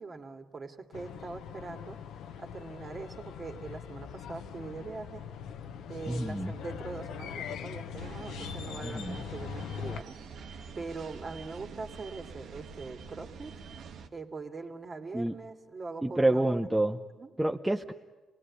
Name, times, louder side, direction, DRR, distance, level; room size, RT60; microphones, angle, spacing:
voice 1, 0.0-2.0 2.4-5.3 5.9-10.2 10.7-13.6 14.1-16.7 17.1-17.3, right 3 dB, 35° right, 5 dB, 2.3 m, -42 dB
sound 1, 0.9-10.0, left 7 dB, 85° left, 1.1 m, -41 dB
voice 2, 6.1-6.5 8.8-9.2 15.1-15.3 16.0-17.0 17.4-17.9, right 1 dB, 10° right, 4 dB, 0.8 m, -28 dB
sound 2, 8.0-14.1, right 5 dB, 75° right, 1.5 m, -46 dB
27.0 x 19.5 x 9.9 m, 1.2 s
cardioid pair, 90°, 0 cm